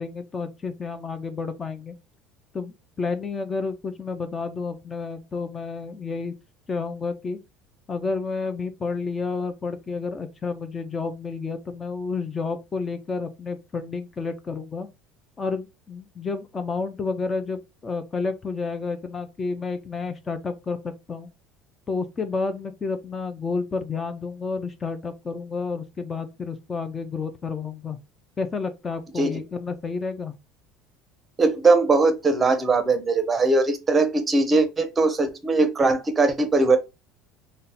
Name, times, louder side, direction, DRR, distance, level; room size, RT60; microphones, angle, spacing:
voice 1, 0.0-2.0 2.5-6.3 6.7-7.4 7.9-14.9 15.4-21.3 21.9-28.0 28.4-30.3, left 4 dB, 25° left, 0.3 m, -30 dB
voice 2, 31.4-36.8, right 3 dB, 20° right, 0.6 m, -20 dB
2.6 x 2.1 x 3.9 m
cardioid pair, 135°, 0 cm